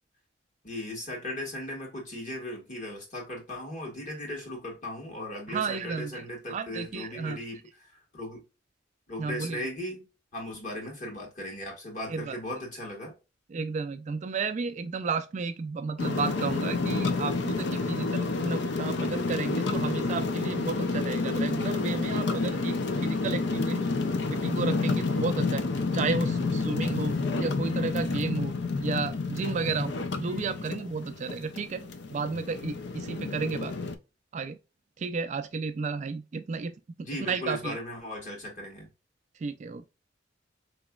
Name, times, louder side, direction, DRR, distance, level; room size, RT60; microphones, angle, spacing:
voice 1, 0.6-8.4 9.1-10.1 10.3-13.2 30.5-30.6 31.8-31.9 37.0-38.9, left 1 dB, 40° left, 1.6 m, -37 dB
voice 2, 5.5-6.2 6.5-7.4 9.2-9.6 12.1-12.4 13.5-23.9 24.3-25.6 25.9-28.5 28.8-31.8 32.1-33.8 34.3-34.6 35.0-36.7 37.2-37.8 39.4-39.9, right 4 dB, 40° right, 0.3 m, -32 dB
sound 1, 16.0-34.0, left 3 dB, 65° left, 0.5 m, -29 dB
3.9 x 3.0 x 2.2 m
head